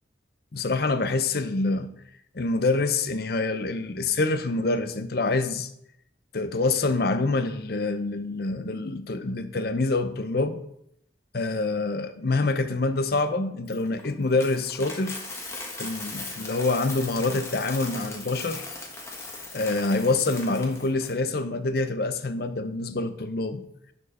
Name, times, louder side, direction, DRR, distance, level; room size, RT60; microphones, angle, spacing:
voice 1, 0.5-1.9 2.3-5.7 6.3-10.6 11.3-15.2 15.8-18.7 19.5-23.6, left 3 dB, 55° left, 0.7 m, -26 dB
Coin (dropping), 13.7-21.1, left 3 dB, 15° left, 1.3 m, -38 dB
11.5 x 4.5 x 4.2 m
head